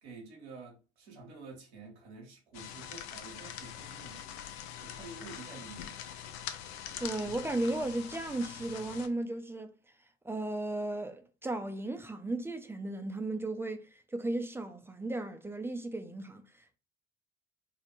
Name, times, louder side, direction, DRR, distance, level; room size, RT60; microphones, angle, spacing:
voice 1, 0.0-4.4 4.8-5.9, right 3 dB, 85° right, 0.7 m, -49 dB
sound 1, 2.5-9.1, left 9 dB, 75° left, 0.5 m, -44 dB
voice 2, 7.0-9.7 10.2-16.8, right 2 dB, 10° right, 0.4 m, -35 dB
2.6 x 2.1 x 2.9 m
hypercardioid pair, 55°, 32 cm